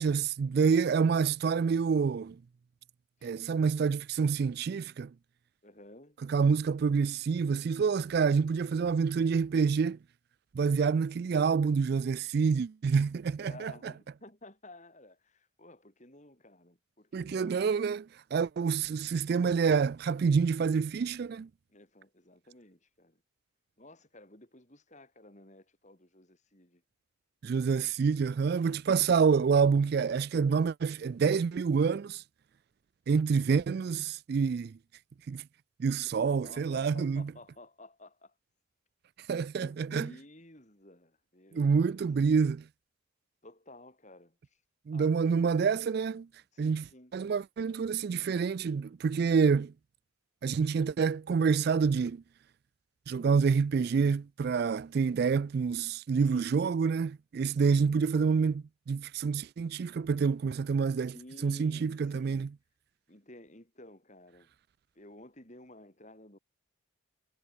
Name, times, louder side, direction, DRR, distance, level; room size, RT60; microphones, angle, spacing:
voice 1, 0.0-2.4 3.2-5.1 6.3-10.0 10.5-13.7 17.1-18.0 18.3-21.5 27.4-32.2 33.1-34.7 35.3-35.4 35.8-37.3 39.3-40.1 41.5-42.6 44.9-46.3 46.6-46.8 47.1-49.7 50.4-52.2 53.1-61.2 61.4-62.5, right 5 dB, 50° right, 0.3 m, -27 dB
voice 2, 5.6-6.2 13.4-17.7 18.7-18.8 21.7-23.2 23.8-26.8 36.0-38.3 39.6-42.0 43.4-44.6 44.9-45.5 46.5-47.2 56.2-56.6 57.5-58.0 60.9-62.5 63.1-64.5 64.9-66.4, left 1 dB, 35° left, 4.1 m, -53 dB
head